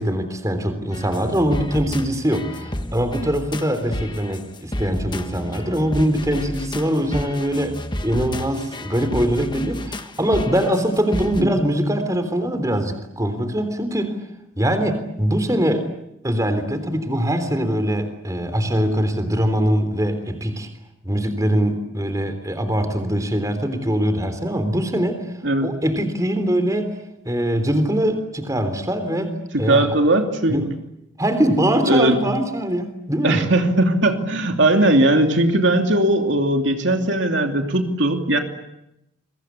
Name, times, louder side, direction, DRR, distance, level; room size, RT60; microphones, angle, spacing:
voice 1, 0.0-14.2 14.6-15.9 16.2-20.7 21.0-25.2 25.6-26.9 27.3-29.9 30.5-30.7 31.2-33.4, equal, 15° right, 9 dB, 3.6 m, -22 dB
sound 1, 0.9-11.4, left 1 dB, 20° left, 1.3 m, -31 dB
voice 2, 29.5-30.6 31.9-32.2 33.2-38.4, right 1 dB, 60° right, 4 dB, 2.9 m, -18 dB
29.5 x 23.0 x 8.5 m, 0.83 s
head